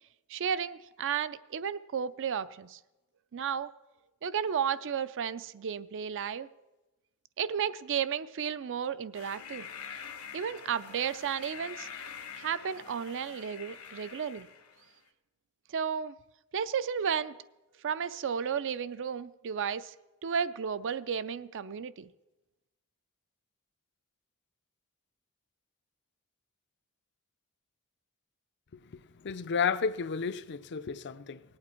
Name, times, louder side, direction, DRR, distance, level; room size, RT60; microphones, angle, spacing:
voice 1, 0.3-2.8 3.3-3.7 4.2-6.5 7.4-9.7 10.3-11.9 12.3-14.5 15.7-16.2 16.5-17.3 17.8-19.9 20.2-22.1, right 7 dB, 60° right, 0.4 m, -33 dB
sound 1, 9.1-14.9, left 7 dB, 70° left, 1.3 m, -46 dB
voice 2, 28.8-31.4, left 6 dB, 50° left, 0.5 m, -32 dB
18.5 x 8.6 x 4.4 m
head